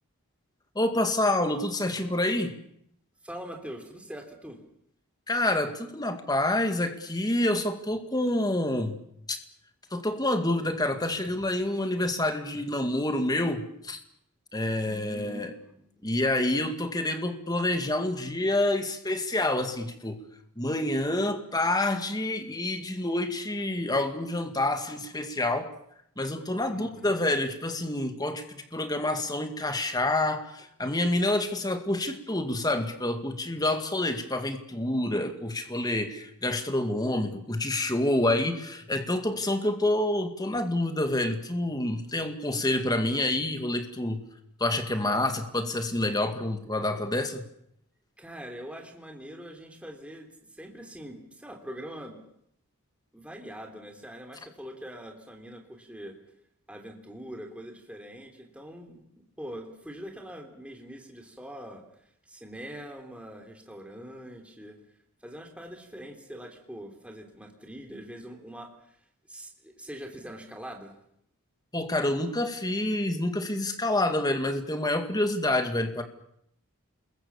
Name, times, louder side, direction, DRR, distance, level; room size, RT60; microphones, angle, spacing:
voice 1, 0.8-2.5 5.3-9.0 9.9-14.0 14.5-15.5 16.0-20.2 20.6-25.7 26.2-44.2 44.6-47.4 71.7-76.0, left 1 dB, 20° left, 7 dB, 2.2 m, -28 dB
voice 2, 3.2-4.6 14.8-16.2 26.7-27.1 48.2-52.2 53.1-56.1 56.7-61.8 62.2-64.8 65.2-69.0 69.3-71.0, equal, 5° right, 3 dB, 3.4 m, -43 dB
27.5 x 22.0 x 7.2 m, 0.73 s
head